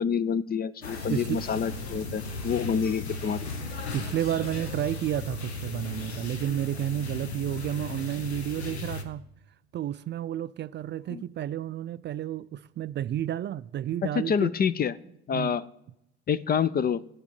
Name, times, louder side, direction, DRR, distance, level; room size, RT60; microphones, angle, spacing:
voice 1, 0.0-3.5 11.1-11.2 14.3-14.9 15.3-15.6 16.3-17.0, left 7 dB, 30° left, 0.5 m, -27 dB
sound 1, 0.8-9.0, left 3 dB, 90° left, 0.9 m, -36 dB
sound 2, 0.9-6.0, left 2 dB, 55° left, 1.7 m, -46 dB
voice 2, 1.1-1.4 3.9-9.2 9.7-14.6 15.3-15.6, right 11 dB, 35° right, 0.4 m, -31 dB
9.4 x 6.8 x 8.8 m
figure-of-eight pair, 50°, 32 cm